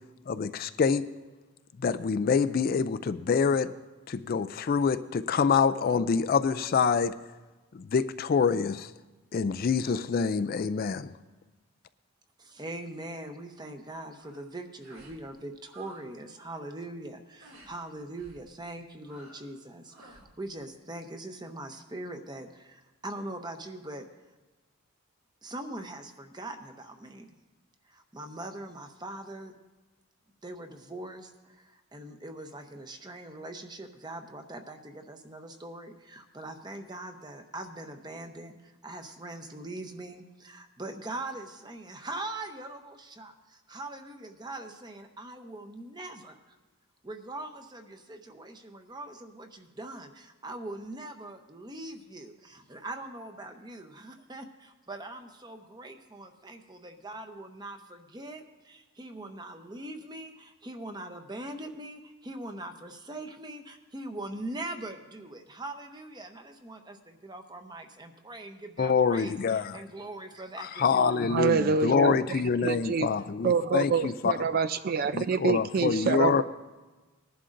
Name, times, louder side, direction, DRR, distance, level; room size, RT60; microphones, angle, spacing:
voice 1, 0.3-1.1 1.8-3.7 4.1-7.1 7.7-8.9 9.3-11.1 68.8-69.8 70.6-74.3 75.1-76.4, left 5 dB, 40° left, 13 dB, 0.3 m, -26 dB
voice 2, 12.4-24.3 25.4-27.3 27.8-29.6 30.4-46.6 47.0-71.1, right 2 dB, 20° right, 6 dB, 0.8 m, -42 dB
sound 1, 14.1-14.5 14.8-15.2 15.5-16.1 16.3-16.7 17.4-17.7 18.2-18.4 19.0-19.5 19.9-20.3, right 2 dB, 75° right, 2.5 m, -53 dB
voice 3, 71.3-73.1 73.4-76.4, right 5 dB, 40° right, 11 dB, 0.3 m, -26 dB
20.0 x 11.0 x 2.6 m, 1.2 s
head